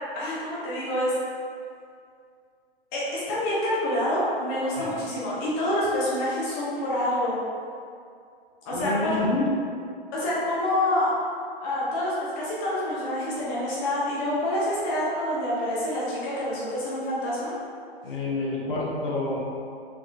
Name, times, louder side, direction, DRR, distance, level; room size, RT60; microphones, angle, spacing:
voice 1, 0.1-1.2 2.9-7.4 8.6-9.2 10.1-11.1 11.6-17.5, left 1 dB, 20° left, -7 dB, 0.4 m, -27 dB
voice 2, 8.7-9.5 18.0-19.4, left 2 dB, 60° left, -4 dB, 0.8 m, -28 dB
3.5 x 3.0 x 2.4 m, 2.3 s
figure-of-eight pair, 115°, 31 cm